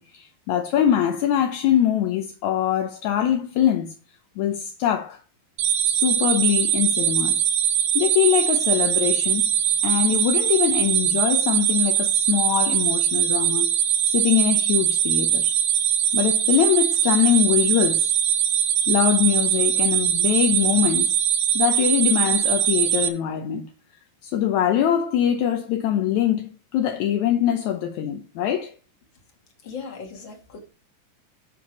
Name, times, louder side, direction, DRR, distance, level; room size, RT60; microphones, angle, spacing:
voice 1, 0.0-3.9 4.4-5.2 5.9-7.4 8.0-9.5 9.8-13.7 14.1-15.6 16.1-18.1 18.9-21.1 21.6-23.7 24.2-28.7, left 10 dB, 75° left, 1.8 m, -23 dB
sound 1, 5.6-23.1, right 10 dB, 90° right, 1.4 m, -21 dB
voice 2, 29.6-30.6, left 5 dB, 35° left, 2.6 m, -37 dB
12.0 x 4.5 x 5.1 m
omnidirectional pair, 4.2 m